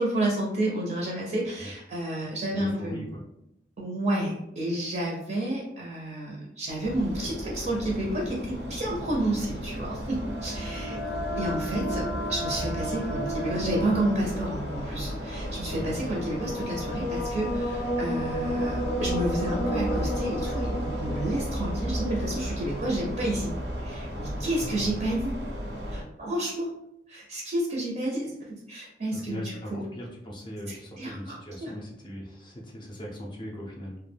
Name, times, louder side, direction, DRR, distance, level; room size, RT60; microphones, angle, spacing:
voice 1, 0.0-3.1 3.8-11.0 11.4-23.5 23.8-25.4 25.9-26.7 27.1-29.8 30.7-31.4 31.6-31.7, right 1 dB, 40° right, -3 dB, 0.5 m, -30 dB
voice 2, 2.5-3.2 10.7-11.1 15.7-16.0 24.5-24.9 29.1-34.0, equal, 25° left, -2 dB, 0.5 m, -39 dB
sound 1, 6.8-26.0, equal, 90° right, 0.6 m, -34 dB
sound 2, 9.5-23.6, equal, 80° left, 0.5 m, -34 dB
2.2 x 2.1 x 3.2 m, 0.83 s
head